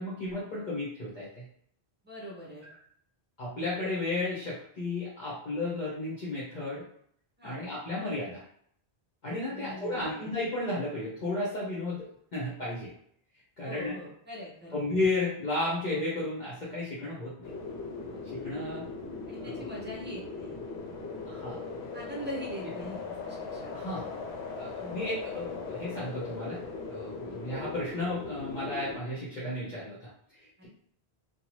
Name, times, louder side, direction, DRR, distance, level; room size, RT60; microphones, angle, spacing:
voice 1, 0.0-1.4 2.6-2.7 3.4-6.8 7.4-8.4 9.2-12.1 12.3-12.9 13.6-13.9 14.7-17.5 18.3-18.8 19.3-19.7 21.3-21.6 23.7-24.1 24.6-26.6 26.9-30.7, left 2 dB, 50° left, -8 dB, 0.9 m, -33 dB
voice 2, 2.0-2.6 7.4-7.6 9.5-10.3 13.6-14.8 18.1-18.5 19.3-20.6 21.9-23.8 27.3-27.4, equal, 10° right, -3 dB, 0.7 m, -42 dB
sound 1, 17.4-29.0, left 4 dB, 85° left, 0.9 m, -39 dB
2.7 x 2.3 x 3.0 m, 0.67 s
omnidirectional pair, 1.1 m